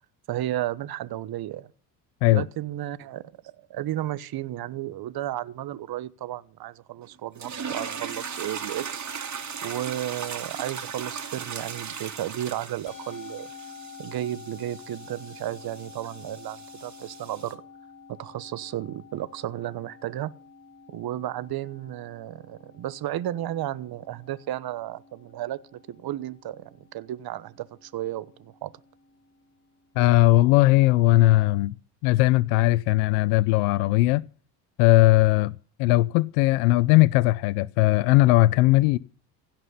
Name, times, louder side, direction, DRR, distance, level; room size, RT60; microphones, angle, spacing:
voice 1, 0.3-1.7 2.3-3.2 3.7-9.1 9.6-13.5 14.0-17.6 18.2-20.3 20.9-28.7, right 13 dB, 55° right, 1.1 m, -33 dB
sound 1, 7.3-17.5, right 6 dB, 40° right, 2.8 m, -38 dB
Musical instrument, 12.9-31.4, left 6 dB, 45° left, 3.0 m, -50 dB
voice 2, 30.0-31.7 32.0-34.2 34.8-39.0, left 18 dB, 80° left, 0.7 m, -19 dB
16.5 x 6.1 x 9.6 m
supercardioid pair, 70°, 45 cm